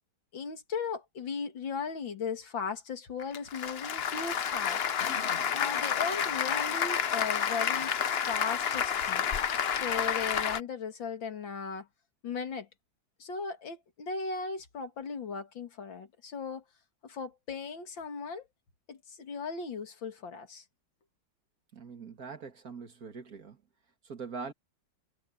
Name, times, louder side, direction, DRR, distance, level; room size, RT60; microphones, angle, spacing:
voice 1, 0.3-4.8 5.5-9.3 9.7-11.9 12.2-12.7 13.2-16.6 17.0-18.5 18.9-20.6, left 5 dB, 85° left, 2.9 m, -37 dB
Applause, 3.2-10.6, left 7 dB, 55° left, 0.7 m, -30 dB
voice 2, 21.7-23.6 24.0-24.5, right 5 dB, 50° right, 2.4 m, -42 dB
omnidirectional pair, 2.0 m